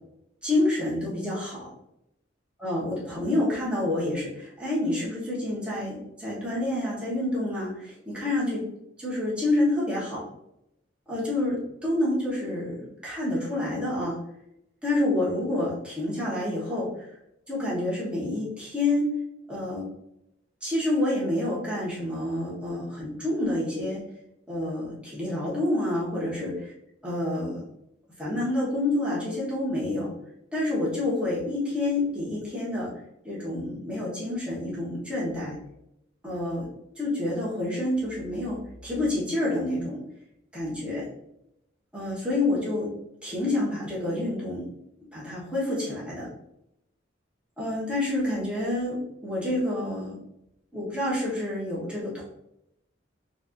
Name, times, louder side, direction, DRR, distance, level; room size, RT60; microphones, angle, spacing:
voice 1, 0.4-1.7 2.6-8.6 9.0-10.3 11.1-14.2 14.8-16.9 17.5-19.1 19.5-19.9 20.6-24.0 24.5-26.7 27.0-27.6 28.2-30.1 30.5-32.9 33.2-35.5 36.2-36.6 37.0-40.0 40.5-41.1 41.9-42.9 43.2-44.6 45.1-46.3 47.6-50.2 50.7-52.2, left 1 dB, 5° right, -8 dB, 1.3 m, -28 dB
4.1 x 2.7 x 2.6 m, 0.82 s
head